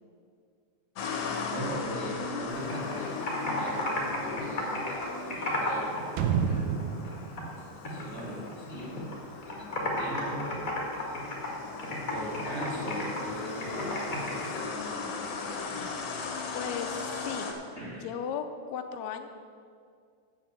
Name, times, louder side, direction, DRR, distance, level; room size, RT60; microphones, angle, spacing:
sound 1, 1.0-17.5, left 4 dB, 65° left, 1.9 m, -38 dB
voice 1, 1.5-3.2 3.5-9.1 9.5-11.2 12.1-15.5 17.8-18.1, equal, 20° right, -6 dB, 2.1 m, -40 dB
Computer keyboard, 2.5-6.0 6.3-7.5 7.8-9.1 9.4-14.6, left 1 dB, 35° left, 1.4 m, -34 dB
sound 2, 6.2-9.0 9.3-9.4, right 7 dB, 80° right, 2.1 m, -31 dB
voice 2, 16.5-17.5 18.0-19.3, left 7 dB, 90° left, 6 dB, 1.5 m, -36 dB
7.8 x 7.5 x 7.2 m, 2.2 s
omnidirectional pair, 4.0 m